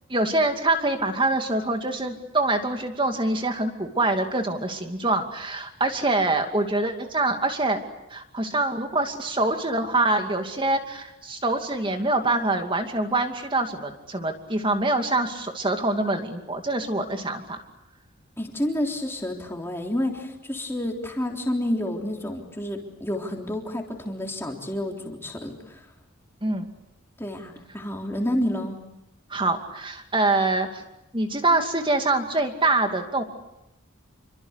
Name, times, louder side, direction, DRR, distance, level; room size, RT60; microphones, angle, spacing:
voice 1, 0.1-7.8 8.1-17.6 26.4-26.7 29.3-30.8 31.1-33.2, right 2 dB, 25° right, 6 dB, 2.5 m, -25 dB
voice 2, 18.4-25.8 27.2-28.8, left 1 dB, 10° left, 1 dB, 3.6 m, -29 dB
28.0 x 24.0 x 8.3 m, 0.88 s
head